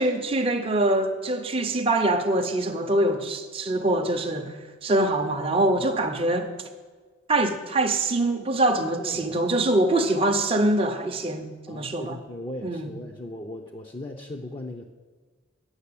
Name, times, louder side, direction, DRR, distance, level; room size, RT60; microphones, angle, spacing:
voice 1, 0.0-6.5 7.3-12.2 12.6-12.9, right 1 dB, 25° right, 0.6 m, -24 dB
voice 2, 9.0-9.3 11.7-14.9, left 1 dB, 25° left, 0.6 m, -38 dB
9.6 x 6.4 x 8.4 m
head